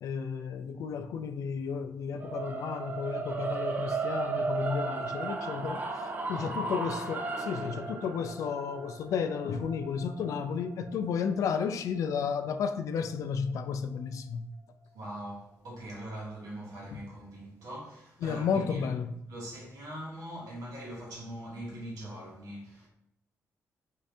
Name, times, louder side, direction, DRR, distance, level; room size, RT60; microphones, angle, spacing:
voice 1, 0.0-14.5 16.9-17.0 18.2-19.1, left 6 dB, 70° left, 0.3 m, -33 dB
sound 1, 2.2-12.4, right 4 dB, 30° right, 0.4 m, -35 dB
voice 2, 6.2-6.6 14.9-18.9 19.3-22.9, right 1 dB, 90° right, 1.3 m, -42 dB
3.7 x 2.7 x 3.3 m
cardioid pair, 150°, 6 cm